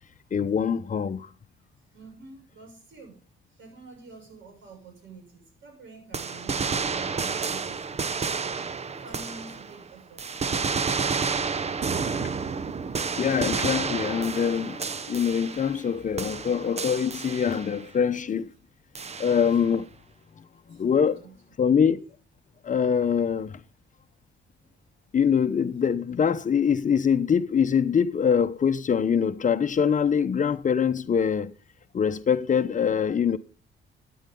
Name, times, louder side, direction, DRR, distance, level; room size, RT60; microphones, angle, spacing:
voice 1, 0.3-1.3 12.2-12.3 13.0-18.5 19.2-19.9 20.4-21.2 21.6-22.0 22.6-23.6 25.1-31.5 31.9-33.4, left 7 dB, 40° left, 0.9 m, -24 dB
voice 2, 1.9-3.2 3.5-8.1 8.9-10.5 19.2-19.3 20.7-20.8 21.2-21.4, right 3 dB, 70° right, 6.9 m, -48 dB
sound 1, 6.1-9.8 10.2-15.9 16.2-17.8 18.9-19.7, right 5 dB, 35° right, 0.8 m, -30 dB
14.5 x 9.6 x 3.8 m
cardioid pair, 90°, 20 cm